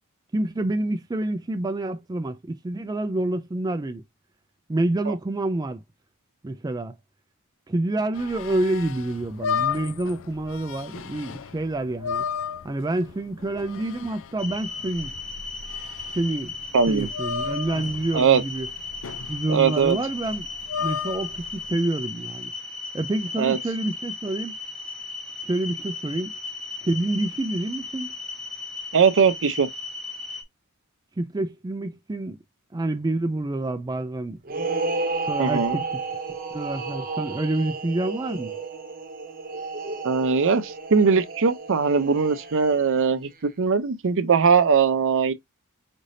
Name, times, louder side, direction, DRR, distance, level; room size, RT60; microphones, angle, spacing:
voice 1, 0.3-4.0 4.7-5.8 6.4-6.9 7.7-12.2 12.6-15.1 16.2-16.6 16.9-18.7 19.3-20.5 20.8-22.5 22.9-24.5 25.4-26.4 26.8-28.1 31.2-32.4 32.7-34.4 35.3-35.8 36.5-38.5, right 2 dB, 20° right, 0.4 m, -27 dB
sound 1, 8.1-21.7, left 6 dB, 65° left, 0.5 m, -34 dB
sound 2, 14.4-30.4, left 3 dB, ahead, 1.1 m, -36 dB
voice 2, 16.7-17.1 18.1-18.4 19.5-20.0 23.4-23.6 28.9-29.7 35.4-35.8 40.0-45.3, right 5 dB, 60° right, 0.6 m, -20 dB
sound 3, 34.4-43.0, right 3 dB, 40° right, 0.9 m, -32 dB
5.1 x 3.3 x 2.6 m
head